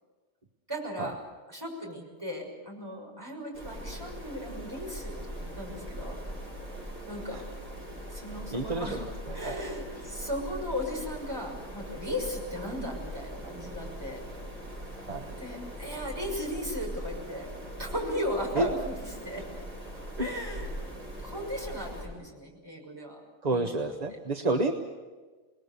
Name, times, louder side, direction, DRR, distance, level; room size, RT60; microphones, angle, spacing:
voice 1, 0.7-1.2 1.5-6.2 7.0-7.4 8.1-9.0 9.3-14.2 15.3-17.5 17.8-19.4 20.2-20.7 21.2-23.2 23.5-24.6, left 1 dB, 15° right, -1 dB, 6.2 m, -37 dB
sound 1, 3.5-22.1, right 1 dB, 55° right, 7.3 m, -41 dB
voice 2, 8.5-9.0 9.3-9.6 15.1-15.3 18.6-18.7 20.2-20.4 23.4-24.7, right 2 dB, 35° right, 5 dB, 1.1 m, -29 dB
27.5 x 20.5 x 6.9 m, 1.4 s
omnidirectional pair, 1.4 m